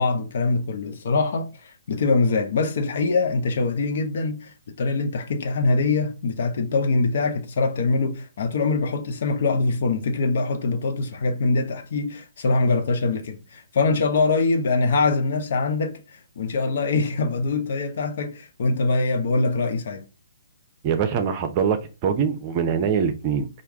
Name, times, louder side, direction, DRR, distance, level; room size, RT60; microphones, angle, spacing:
voice 1, 0.0-20.0, left 3 dB, 55° left, 0.9 m, -23 dB
voice 2, 20.8-23.5, right 7 dB, 30° right, 0.7 m, -23 dB
4.7 x 2.6 x 3.5 m
hypercardioid pair, 135°, 0 cm